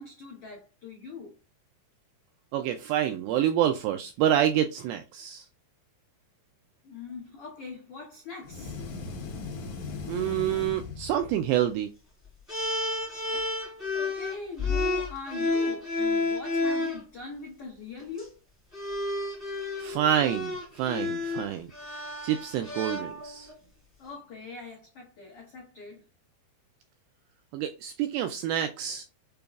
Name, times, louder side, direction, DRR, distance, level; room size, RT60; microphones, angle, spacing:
voice 1, 0.0-1.4 6.8-8.8 13.9-18.4 24.0-26.0, left 4 dB, 85° left, 1.3 m, -42 dB
voice 2, 2.5-5.5 10.1-11.9 19.8-21.7 22.2-23.5 27.5-29.0, right 10 dB, 85° right, 2.1 m, -27 dB
sound 1, 8.4-11.6, left 4 dB, 70° left, 1.7 m, -38 dB
sound 2, 12.5-17.0 18.0-18.2 18.7-23.5, left 3 dB, ahead, 0.7 m, -31 dB
6.7 x 2.3 x 2.3 m
omnidirectional pair, 4.7 m